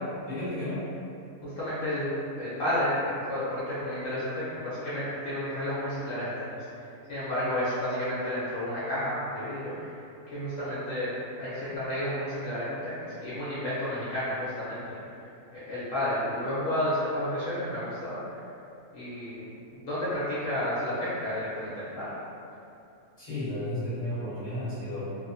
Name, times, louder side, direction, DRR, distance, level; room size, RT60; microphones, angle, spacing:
voice 1, 0.3-0.9 11.6-11.8 23.2-25.0, left 1 dB, 35° left, -13 dB, 0.9 m, -33 dB
voice 2, 1.4-6.4 6.8-9.9 10.3-15.0 15.5-18.4 18.9-22.1, left 1 dB, 70° left, -12 dB, 1.1 m, -31 dB
2.9 x 2.1 x 2.6 m, 2.7 s
omnidirectional pair, 1.5 m